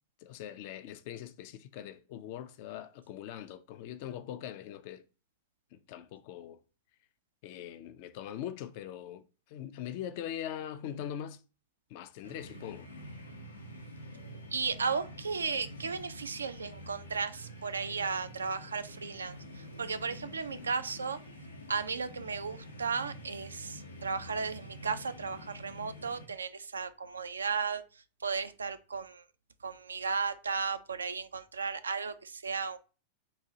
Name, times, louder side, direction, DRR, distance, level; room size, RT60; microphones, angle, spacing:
voice 1, 0.2-5.0 5.7-6.6 7.4-11.4 11.9-12.9, left 10 dB, 50° left, 0.4 m, -42 dB
sound 1, 12.2-26.3, equal, 85° left, 0.7 m, -48 dB
voice 2, 14.5-21.2 21.7-29.2 29.6-32.8, right 5 dB, 75° right, 0.3 m, -35 dB
3.9 x 2.3 x 2.8 m
figure-of-eight pair, 90°, 0 cm